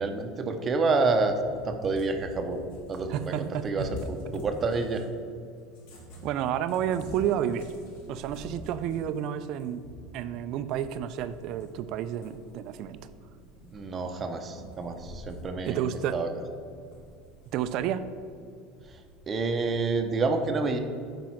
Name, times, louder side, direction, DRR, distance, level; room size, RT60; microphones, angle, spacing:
voice 1, 0.0-1.4 1.6-2.6 2.9-5.0 13.7-15.9 16.1-16.3 18.9-20.8, right 3 dB, 25° right, 6 dB, 0.8 m, -28 dB
Cat, 0.9-5.2 5.7-11.9 12.2-14.1 14.5-15.6 15.9-16.0 16.6-18.2 18.8-19.9, left 1 dB, 70° left, 1.9 m, -46 dB
voice 2, 3.1-3.9 6.2-7.7 8.1-9.8 10.1-13.0 15.7-16.2 17.5-18.0, right 10 dB, 50° right, 12 dB, 0.5 m, -30 dB
7.6 x 5.3 x 5.8 m, 2.3 s
supercardioid pair, 140°, 0 cm